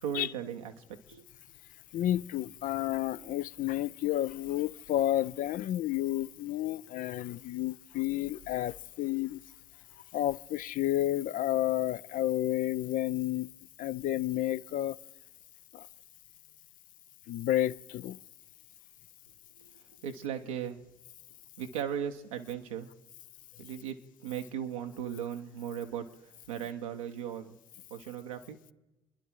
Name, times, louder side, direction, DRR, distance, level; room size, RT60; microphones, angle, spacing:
voice 1, 0.0-0.7 1.1-1.2 19.6-19.7 20.0-20.8 21.6-22.9 23.6-24.0 24.2-26.1 26.5-27.6 27.9-28.6, right 9 dB, 80° right, 1.1 m, -37 dB
voice 2, 1.9-9.4 10.1-13.5 13.8-15.0 15.7-15.9 17.3-18.2, left 13 dB, 55° left, 0.5 m, -31 dB
27.5 x 11.0 x 4.5 m
hypercardioid pair, 55°, 17 cm